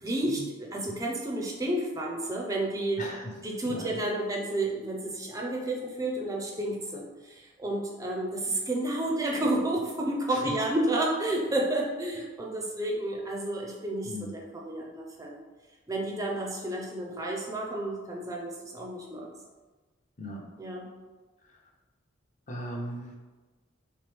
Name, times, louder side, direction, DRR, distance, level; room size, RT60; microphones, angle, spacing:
voice 1, 0.0-3.0 3.4-15.4 15.9-19.3 20.6-20.9, right 1 dB, 15° right, -1 dB, 0.4 m, -31 dB
voice 2, 3.0-3.3 3.6-4.0 10.3-10.5 14.0-14.3 20.2-20.4 22.5-23.2, equal, 40° left, 0 dB, 0.6 m, -37 dB
3.4 x 3.0 x 3.3 m, 1.3 s
head